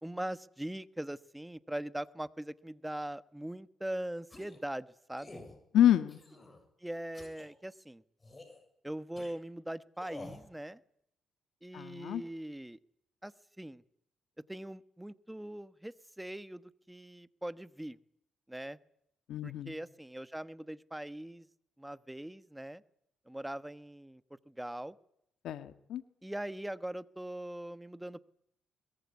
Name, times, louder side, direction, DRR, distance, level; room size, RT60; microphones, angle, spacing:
voice 1, 0.0-5.4 6.8-8.0 8.8-10.8 11.6-12.8 13.2-13.3 13.6-13.8 14.5-18.0 18.5-18.8 19.4-21.5 21.8-22.8 23.3-24.2 24.5-24.9 26.2-28.2, right 1 dB, 5° right, 14 dB, 1.2 m, -41 dB
sound 1, 4.3-4.6 5.2-5.5 6.1-6.6 7.1-7.5 8.2-8.6 9.2-9.3 10.0-10.4, left 2 dB, 20° left, 7.3 m, -49 dB
voice 2, 5.7-6.2 11.7-12.2 19.3-19.8 25.4-26.0, left 11 dB, 75° left, 11 dB, 1.5 m, -28 dB
22.5 x 22.0 x 9.7 m, 0.74 s
cardioid pair, 90°, 0 cm